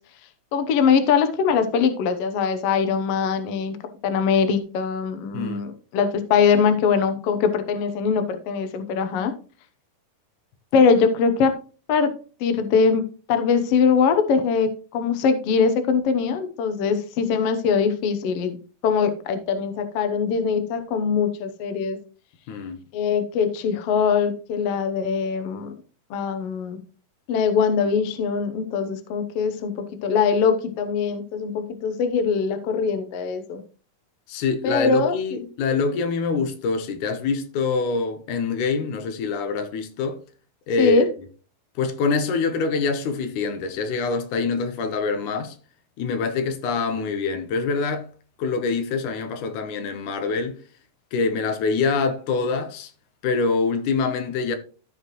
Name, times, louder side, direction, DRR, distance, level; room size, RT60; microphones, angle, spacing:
voice 1, 0.5-3.8 4.0-9.3 10.7-11.5 11.9-12.1 12.4-18.6 18.8-22.0 22.9-25.7 26.1-26.8 27.3-33.6 34.6-35.4 40.8-41.1, left 6 dB, 90° left, 1.3 m, -22 dB
voice 2, 22.5-22.8 34.3-40.2 40.7-41.1 41.8-45.6 46.0-48.1 48.4-50.6 51.1-52.9 53.2-54.6, left 4 dB, 75° left, 2.1 m, -25 dB
14.5 x 5.0 x 3.0 m
omnidirectional pair, 4.1 m